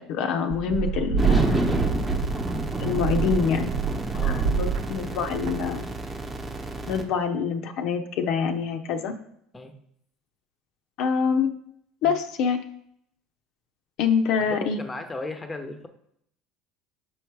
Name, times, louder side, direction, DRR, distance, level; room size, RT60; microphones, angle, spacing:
voice 1, 0.0-1.8 2.8-3.7 4.2-5.9 6.9-9.1 11.0-11.5 12.0-12.6 14.0-14.8, left 6 dB, 65° left, 6 dB, 0.6 m, -26 dB
sound 1, 0.5-6.0, right 7 dB, 55° right, 0.5 m, -27 dB
sound 2, 1.2-7.0, right 1 dB, 15° right, 0.9 m, -29 dB
voice 2, 4.1-4.5 9.5-9.7 12.0-12.1 14.4-15.9, left 2 dB, 15° left, 7 dB, 0.8 m, -36 dB
6.2 x 4.7 x 4.7 m, 0.71 s
cardioid pair, 130°, 0 cm